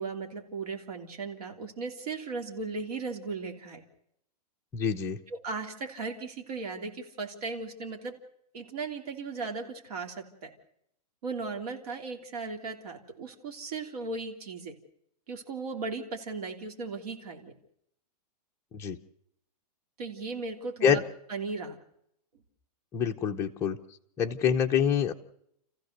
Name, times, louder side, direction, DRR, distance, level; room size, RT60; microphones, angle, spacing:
voice 1, 0.0-3.8 5.3-8.2 8.5-10.5 11.2-14.7 15.3-17.5 20.0-21.0 21.3-21.8, right 4 dB, 65° right, 3 dB, 3.1 m, -37 dB
voice 2, 4.7-5.2 18.7-19.0 20.8-21.0 22.9-23.8 24.2-25.1, left 8 dB, 15° left, 2 dB, 0.8 m, -26 dB
28.5 x 15.0 x 6.7 m, 0.75 s
supercardioid pair, 170°, 21 cm